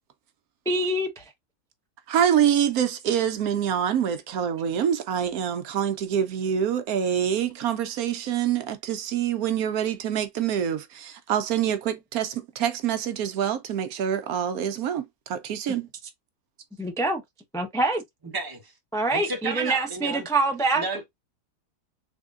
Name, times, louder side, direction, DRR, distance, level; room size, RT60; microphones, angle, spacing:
voice 1, 0.7-1.3 16.8-17.2 17.5-18.0 18.9-20.8, right 2 dB, 5° left, 0.3 m, -25 dB
voice 2, 2.1-15.9, right 9 dB, 75° right, 1.1 m, -26 dB
voice 3, 18.3-18.7 19.1-20.3 20.7-21.2, right 3 dB, 20° right, 0.8 m, -32 dB
3.6 x 3.5 x 2.4 m
omnidirectional pair, 1.7 m